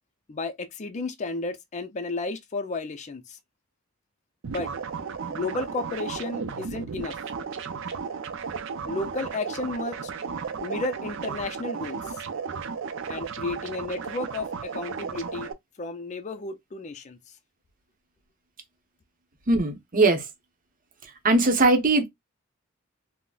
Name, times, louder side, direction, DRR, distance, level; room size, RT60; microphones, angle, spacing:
voice 1, 0.3-3.4 4.5-4.7 5.3-7.2 8.8-10.1 10.6-12.2 13.1-15.5 15.8-17.2, left 3 dB, 35° left, 0.5 m, -33 dB
sound 1, 4.4-15.5, right 6 dB, 65° right, 0.5 m, -34 dB
voice 2, 19.5-20.2 21.2-22.1, right 2 dB, 40° right, 0.9 m, -20 dB
3.8 x 2.1 x 2.3 m
head